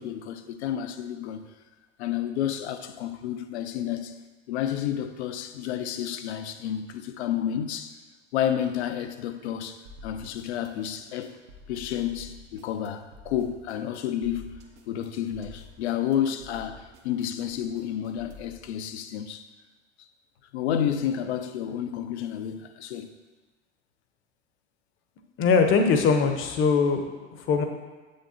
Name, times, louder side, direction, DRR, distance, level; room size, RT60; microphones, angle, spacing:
voice 1, 0.0-1.5 2.0-4.2 4.5-8.0 8.3-11.4 11.7-19.5 20.0-20.1 20.5-23.1, left 10 dB, 60° left, 0.6 m, -30 dB
sound 1, 9.9-18.6, left 2 dB, 70° right, 1.1 m, -49 dB
voice 2, 25.4-27.1 27.3-27.6, left 5 dB, 35° left, 0.8 m, -21 dB
7.8 x 6.6 x 2.8 m
figure-of-eight pair, 80°, 37 cm